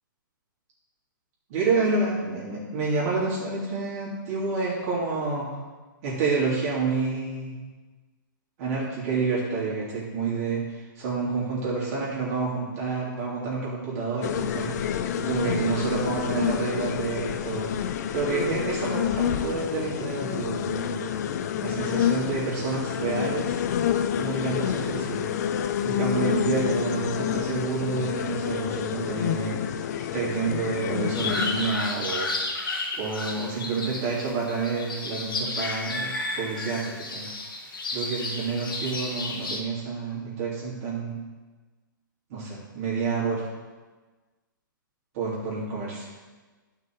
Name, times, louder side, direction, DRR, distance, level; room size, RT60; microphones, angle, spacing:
voice 1, 1.5-5.5 6.0-7.6 8.6-17.7 18.1-21.0 21.6-23.6 24.1-25.3 25.8-29.6 30.0-32.3 33.0-37.3 37.9-41.2 42.3-43.5 45.1-46.1, right 4 dB, 45° right, -6 dB, 3.1 m, -29 dB
sound 1, 14.2-31.7, left 9 dB, 50° left, 0.6 m, -28 dB
sound 2, 31.1-39.6, left 2 dB, 80° left, 1.7 m, -32 dB
11.0 x 6.0 x 4.7 m, 1.3 s
hypercardioid pair, 135°, 11 cm